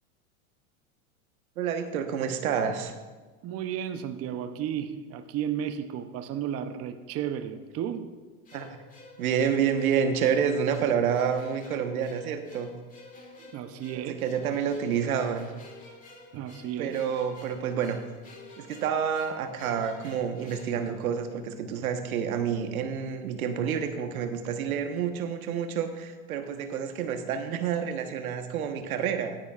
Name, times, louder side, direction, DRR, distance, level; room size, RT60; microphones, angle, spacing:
voice 1, 1.6-2.9 8.5-8.8 9.2-12.7 13.9-15.5 16.8-18.0 18.6-29.4, right 7 dB, 85° right, 6 dB, 1.3 m, -28 dB
voice 2, 3.4-8.1 13.4-14.2 16.3-17.0, right 9 dB, 35° right, 8 dB, 0.8 m, -33 dB
sound 1, 8.5-21.7, left 3 dB, 20° left, 2.1 m, -51 dB
17.0 x 10.0 x 2.5 m, 1.3 s
hypercardioid pair, 110°, 42 cm